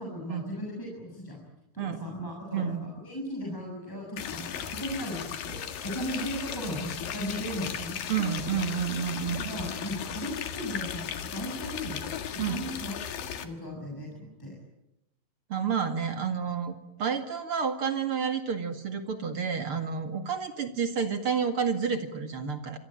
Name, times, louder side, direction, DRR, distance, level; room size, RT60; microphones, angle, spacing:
voice 1, 0.0-1.4 1.7-8.0 9.3-12.0 12.3-14.5, equal, 5° left, -1 dB, 6.5 m, -37 dB
voice 2, 1.8-2.1 2.5-2.8 8.1-9.5 12.4-12.7 15.5-22.8, right 6 dB, 45° right, 7 dB, 2.5 m, -30 dB
sound 1, 4.2-13.5, left 8 dB, 75° left, 3.6 m, -36 dB
27.5 x 23.0 x 9.0 m, 0.89 s
omnidirectional pair, 4.0 m